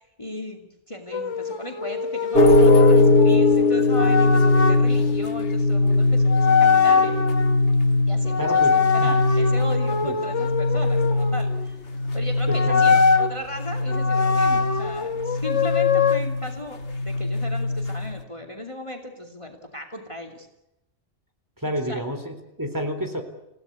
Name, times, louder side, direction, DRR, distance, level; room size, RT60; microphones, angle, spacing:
voice 1, 0.0-7.2 8.0-11.8 12.1-20.5 21.9-22.0, left 1 dB, 25° left, 3 dB, 2.7 m, -36 dB
sound 1, 1.1-4.8 5.9-6.0 6.3-7.6 8.2-11.7 12.5-13.3 13.9-16.2, left 5 dB, 80° left, 1.8 m, -23 dB
sound 2, 2.3-18.2, left 2 dB, 55° left, 1.7 m, -21 dB
voice 2, 8.4-9.2 10.0-10.2 12.5-13.0 21.6-23.2, equal, 15° right, 5 dB, 3.9 m, -29 dB
29.0 x 17.0 x 8.3 m, 0.90 s
omnidirectional pair, 1.2 m